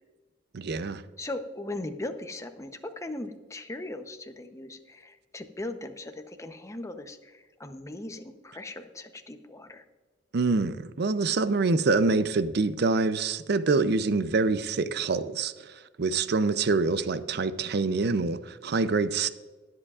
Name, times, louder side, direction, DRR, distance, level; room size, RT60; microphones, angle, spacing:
voice 1, 0.5-1.0 10.3-19.3, right 3 dB, 60° right, 0.5 m, -26 dB
voice 2, 1.2-9.8, left 2 dB, 15° left, 0.7 m, -39 dB
19.5 x 7.8 x 2.4 m
head